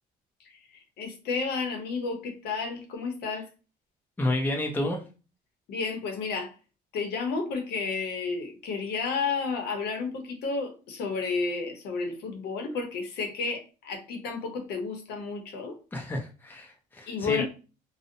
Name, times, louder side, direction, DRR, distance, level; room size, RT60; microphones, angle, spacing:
voice 1, 0.4-3.5 5.7-6.5 6.9-15.8 17.1-17.4, left 4 dB, 75° left, 4 dB, 0.7 m, -32 dB
voice 2, 4.2-5.0 15.9-17.4, left 1 dB, 10° left, 1 dB, 0.6 m, -30 dB
2.5 x 2.1 x 2.6 m, 0.34 s
cardioid pair, 110°, 17 cm